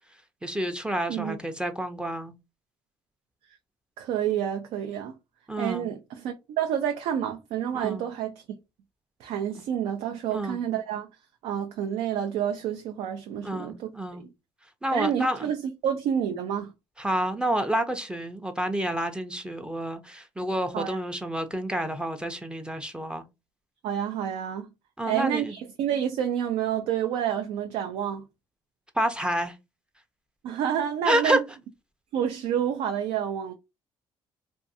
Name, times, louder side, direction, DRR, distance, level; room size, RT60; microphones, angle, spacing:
voice 1, 0.4-2.3 5.5-5.9 7.7-8.0 10.3-10.6 13.4-14.2 14.8-15.5 17.0-23.2 25.0-25.5 29.0-29.6 31.0-31.4, right 1 dB, 10° right, 0.5 m, -29 dB
voice 2, 4.0-5.1 5.6-8.4 9.2-11.1 11.4-14.3 14.9-15.6 15.8-16.7 20.7-21.0 23.8-24.7 25.0-28.2 30.4-31.4 32.1-33.5, right 9 dB, 80° right, 0.4 m, -29 dB
2.5 x 2.3 x 2.6 m
cardioid pair, 90°, 11 cm